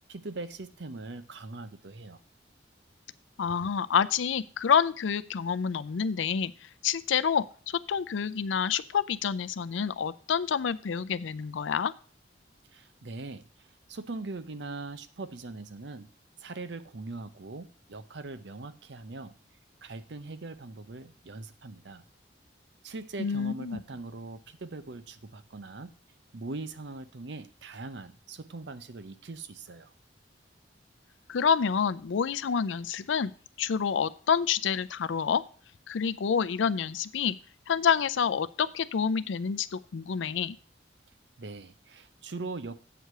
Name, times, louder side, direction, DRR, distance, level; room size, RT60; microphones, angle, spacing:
voice 1, 0.1-2.2 12.7-16.1 16.4-19.3 19.8-22.0 22.8-25.9 26.3-29.9 41.4-42.8, right 3 dB, 70° right, 12 dB, 0.7 m, -41 dB
voice 2, 3.4-11.9 23.2-23.8 31.3-33.3 33.6-35.4 35.9-37.4 37.7-40.6, left 7 dB, 85° left, 15 dB, 0.4 m, -28 dB
7.9 x 4.8 x 6.6 m, 0.40 s
head